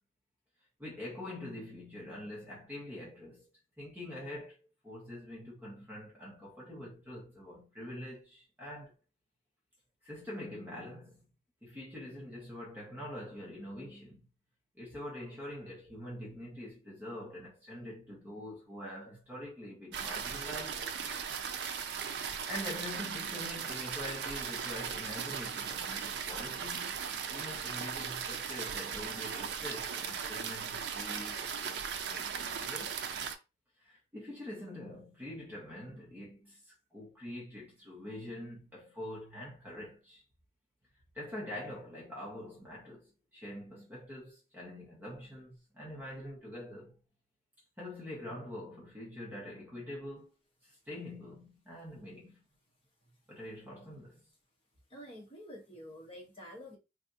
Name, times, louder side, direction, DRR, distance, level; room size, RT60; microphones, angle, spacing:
voice 1, 0.8-3.5 3.8-4.6 4.8-8.9 10.0-11.2 11.6-14.3 14.7-20.9 22.4-27.0 27.3-33.0 33.8-40.2 41.1-47.0 47.8-50.3 50.6-52.4 53.3-54.3, left 1 dB, 10° right, 1.1 m, -45 dB
sound 1, 19.9-33.3, right 7 dB, 70° right, 0.4 m, -38 dB
voice 2, 54.9-56.8, equal, 30° left, 1.3 m, -48 dB
3.3 x 2.6 x 2.6 m
head